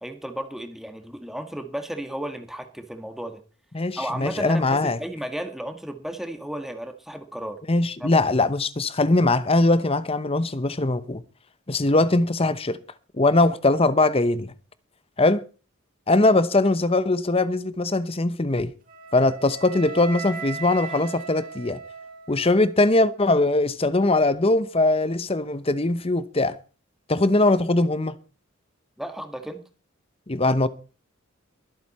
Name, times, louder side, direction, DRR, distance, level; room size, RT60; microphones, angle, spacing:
voice 1, 0.0-3.4 4.0-7.6 8.0-8.2 29.0-29.6, right 1 dB, ahead, 1.7 m, -34 dB
voice 2, 3.7-5.0 7.7-11.2 11.7-12.8 13.2-14.5 15.2-15.4 16.1-18.7 19.1-21.8 22.3-26.6 27.1-28.2 30.3-30.7, left 2 dB, 30° left, 0.9 m, -21 dB
Wind instrument woodwind instrument, 18.9-22.9, right 5 dB, 45° right, 5.8 m, -38 dB
22.5 x 8.1 x 4.3 m
head